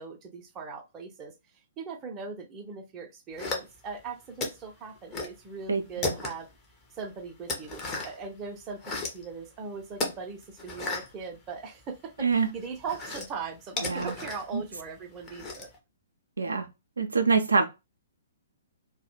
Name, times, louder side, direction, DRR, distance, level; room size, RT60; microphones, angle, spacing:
voice 1, 0.0-6.5 6.9-15.7, right 5 dB, 25° right, 0.5 m, -40 dB
sound 1, 3.4-4.0 4.4-5.4 5.7-6.6 7.0-8.3 8.6-9.3 9.9-12.0 12.3-15.8, left 3 dB, 20° left, 0.7 m, -35 dB
voice 2, 5.7-6.1 12.2-12.5 13.8-14.1 14.5-14.6 16.4-16.7 17.0-17.7, right 4 dB, 75° right, 0.4 m, -25 dB
2.3 x 2.1 x 2.9 m
figure-of-eight pair, 120°, 0 cm